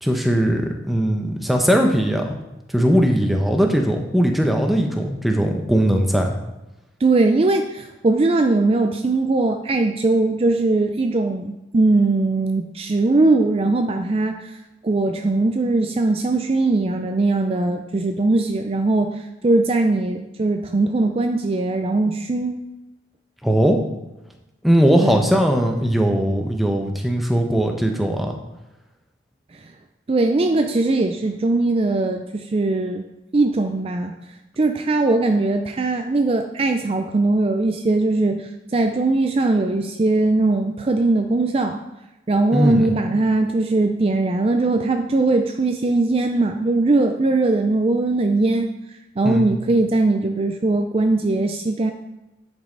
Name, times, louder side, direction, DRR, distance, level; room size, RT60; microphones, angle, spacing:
voice 1, 0.0-2.4 2.7-6.3 23.4-23.8 24.6-28.4 42.5-42.9 49.2-49.5, equal, ahead, 2 dB, 0.8 m, -19 dB
voice 2, 7.0-14.5 14.8-22.6 25.0-25.2 30.1-33.0 33.3-34.1 34.6-41.8 42.3-48.7 49.2-51.9, right 2 dB, 30° right, 5 dB, 0.4 m, -20 dB
10.0 x 5.4 x 3.9 m, 0.97 s
head